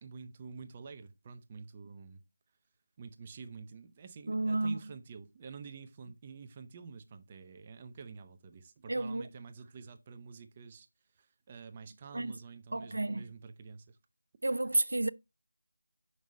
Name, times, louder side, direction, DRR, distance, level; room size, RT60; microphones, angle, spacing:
voice 1, 0.0-2.2 3.0-10.9 11.1-14.0, right 5 dB, 20° right, 0.5 m, -48 dB
voice 2, 4.3-4.8 8.9-9.2 12.1-12.4 12.7-13.2 14.4-15.1, right 2 dB, 70° right, 0.4 m, -31 dB
6.2 x 5.3 x 3.1 m
figure-of-eight pair, 170°, 0 cm